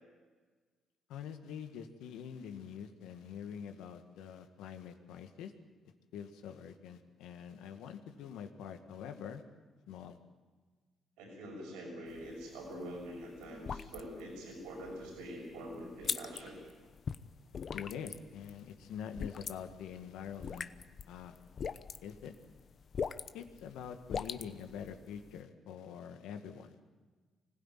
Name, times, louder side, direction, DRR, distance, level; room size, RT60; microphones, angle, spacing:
voice 1, 1.1-5.5 6.1-9.4 9.9-10.2 17.7-20.7 21.1-21.3 22.0-22.3 23.3-26.8, left 8 dB, 80° left, 7 dB, 1.8 m, -45 dB
voice 2, 11.2-16.6, right 1 dB, 85° right, 0 dB, 6.2 m, -45 dB
sound 1, 12.1-25.4, left 6 dB, 55° left, 0.9 m, -43 dB
24.5 x 16.0 x 9.2 m, 1.4 s
supercardioid pair, 55°, 0 cm